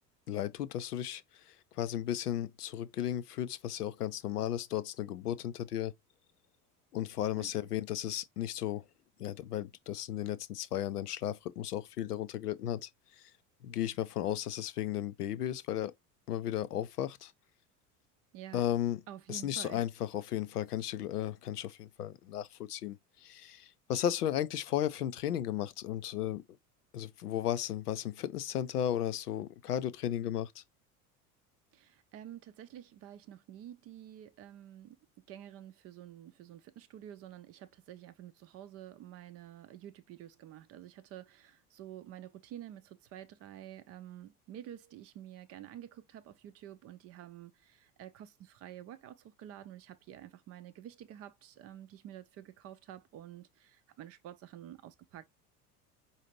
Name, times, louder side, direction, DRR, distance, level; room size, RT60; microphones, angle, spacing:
voice 1, 0.3-1.2 1.8-5.9 6.9-8.8 9.2-12.9 13.6-15.9 16.3-17.3 18.5-19.0 19.3-23.0 23.2-26.4 26.9-30.6, left 11 dB, 80° left, 0.5 m, -34 dB
voice 2, 7.3-7.7 18.3-18.7 19.1-19.8 31.7-35.0 35.3-55.2, right 11 dB, 30° right, 0.5 m, -49 dB
4.9 x 2.7 x 2.9 m
figure-of-eight pair, 75°, 47 cm